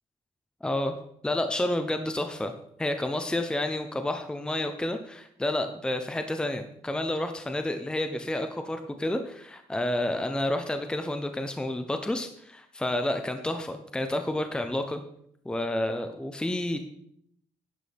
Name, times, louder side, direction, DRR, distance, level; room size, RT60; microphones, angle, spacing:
voice 1, 0.6-0.9 1.2-2.5 2.8-15.0 15.4-16.8, left 1 dB, 5° left, 6 dB, 0.8 m, -30 dB
11.0 x 8.9 x 3.5 m, 0.70 s
cardioid pair, 120°, 12 cm